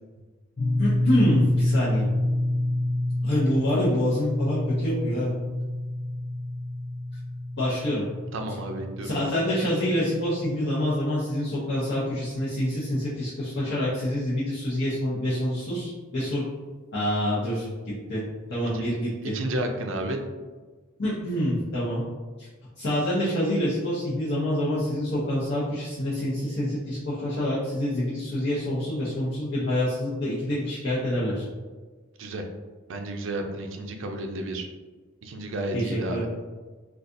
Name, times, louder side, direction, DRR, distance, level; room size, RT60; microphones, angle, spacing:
sound 1, 0.6-10.7, left 1 dB, 40° left, 0.4 m, -28 dB
voice 1, 0.8-2.1 3.2-5.3 7.6-8.0 9.0-16.4 16.9-17.7 18.1-18.2 18.5-19.4 21.0-22.0 22.4-22.5 22.8-31.4 35.7-36.2, equal, 60° left, -10 dB, 0.8 m, -26 dB
voice 2, 8.3-9.1 18.7-18.9 19.3-20.2 32.2-32.4 32.9-34.7 35.2-36.3, right 1 dB, 70° right, 4 dB, 0.4 m, -31 dB
4.0 x 2.4 x 2.5 m, 1.3 s
head